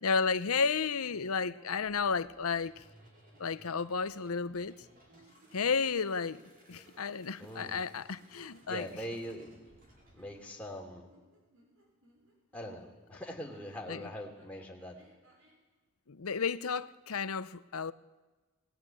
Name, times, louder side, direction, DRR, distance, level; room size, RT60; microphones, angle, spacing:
voice 1, 0.0-2.7 3.4-4.7 5.5-6.4 6.7-8.8 13.9-14.0 16.1-17.9, left 5 dB, 80° left, 0.8 m, -32 dB
sound 1, 1.0-2.7 3.3-3.9 4.3-5.6 6.8-8.0 8.3-12.9 13.5-15.6, right 1 dB, 65° right, 7.3 m, -65 dB
sound 2, 1.7-10.4, right 1 dB, 40° right, 5.1 m, -61 dB
voice 2, 7.4-7.8 8.7-9.5 10.1-11.1 12.5-15.0, equal, 5° left, 3.2 m, -42 dB
20.0 x 19.5 x 9.0 m
head